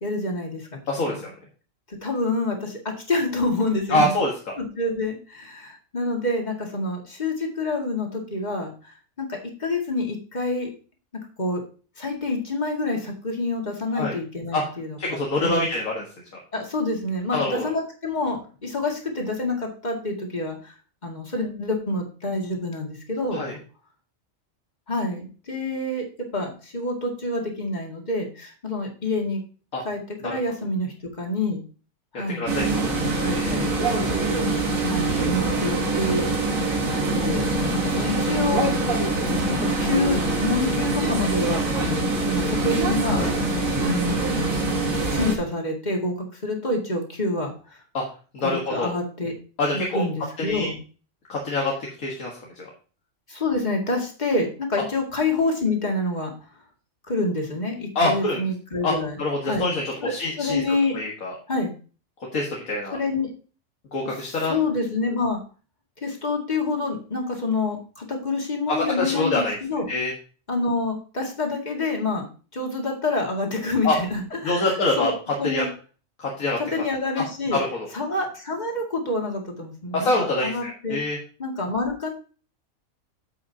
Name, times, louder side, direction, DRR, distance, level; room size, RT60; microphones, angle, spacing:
voice 1, 0.0-0.7 1.1-1.2 1.9-4.2 4.6-10.7 11.4-11.6 12.0-15.7 16.5-20.7 21.0-23.5 24.9-26.0 26.3-29.4 29.8-31.6 32.1-32.5 32.8-33.8 34.1-34.5 34.8-36.8 37.1-37.4 37.7-38.7 39.5-43.2 43.8-44.3 44.8-47.8 48.4-49.3 49.9-50.8 53.3-56.3 57.1-59.2 59.5-59.6 60.0-61.0 61.5-61.7 62.9-63.3 64.4-65.4 66.0-69.9 70.5-72.3 72.5-75.7 76.6-77.6 77.9-80.1 80.4-81.0 81.4-82.1, left 2 dB, 30° left, 1 dB, 2.1 m, -27 dB
voice 2, 0.9-1.3 3.9-4.3 13.9-14.1 14.5-14.6 15.0-16.0 17.3-17.7 23.3-23.5 29.7-29.8 30.2-30.3 32.4-32.6 32.9-33.0 33.3-33.7 43.1-43.3 47.9-48.0 48.3-48.9 49.6-50.0 50.4-50.7 51.3-51.7 52.0-52.7 58.0-58.4 58.8-59.8 60.1-60.6 60.9-61.3 62.3-63.0 63.9-64.6 68.7-69.6 69.9-70.1 73.8-74.0 74.4-75.1 75.4-75.7 76.2-76.6 77.2-77.3 77.5-77.9 79.9-81.2, left 2 dB, 85° left, -2 dB, 2.0 m, -25 dB
sound 1, 32.5-45.4, right 2 dB, 80° right, 2.0 m, -24 dB
9.6 x 7.6 x 2.8 m, 0.37 s
omnidirectional pair, 1.4 m